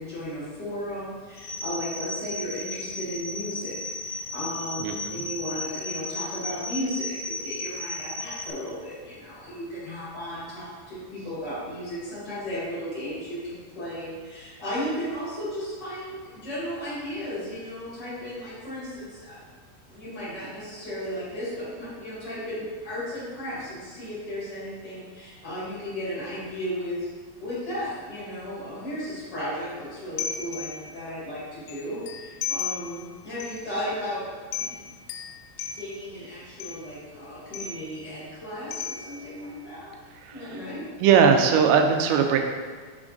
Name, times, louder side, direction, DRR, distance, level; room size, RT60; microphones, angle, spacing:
voice 1, 0.0-3.7 4.0-4.8 5.1-19.5 19.9-27.1 27.4-34.2 34.6-34.8 35.7-40.0 40.3-40.9, equal, 40° left, -9 dB, 1.6 m, -35 dB
sound 1, 1.4-8.5, left 2 dB, 70° left, 2.2 m, -35 dB
voice 2, 4.8-5.2 40.2-40.6 41.0-42.4, right 6 dB, 85° right, 4 dB, 2.7 m, -20 dB
sound 2, 30.2-31.1 31.7-33.1 33.4-33.7 34.1-34.2 34.5-36.1 36.6-37.0 37.5-38.1 38.7-39.5, left 6 dB, 85° left, 2.1 m, -35 dB
6.1 x 4.4 x 3.8 m, 1.5 s
omnidirectional pair, 4.8 m